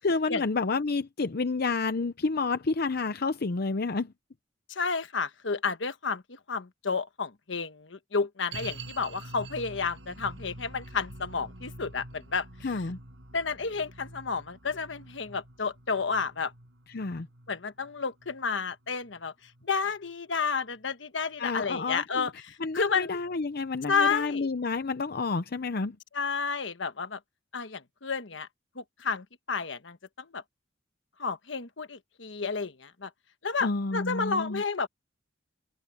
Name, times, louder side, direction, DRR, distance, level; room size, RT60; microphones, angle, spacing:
voice 1, 0.0-4.1 12.6-13.0 16.9-17.3 21.4-22.3 22.6-26.0 33.6-34.6, left 3 dB, 55° left, 0.7 m, -29 dB
voice 2, 4.7-6.2 6.5-12.5 13.3-16.5 17.5-19.3 19.6-23.2 23.9-24.5 26.1-27.2 27.5-28.5 28.8-30.4 31.2-33.1 33.4-34.9, left 5 dB, 70° left, 1.2 m, -31 dB
sound 1, 8.5-19.8 20.1-20.2 20.8-20.9, right 2 dB, 75° right, 5.5 m, -46 dB
head